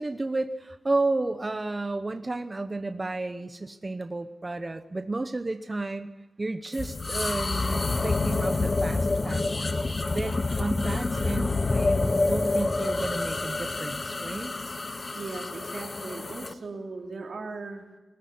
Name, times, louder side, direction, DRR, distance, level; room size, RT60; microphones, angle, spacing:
voice 1, 0.0-14.5, right 2 dB, 30° right, 8 dB, 0.9 m, -32 dB
sound 1, 6.7-16.5, left 3 dB, 40° left, 1.1 m, -28 dB
voice 2, 15.1-17.8, right 3 dB, 75° right, 1 dB, 3.1 m, -38 dB
22.5 x 14.0 x 9.6 m, 1.2 s
wide cardioid pair, 105°, 0 cm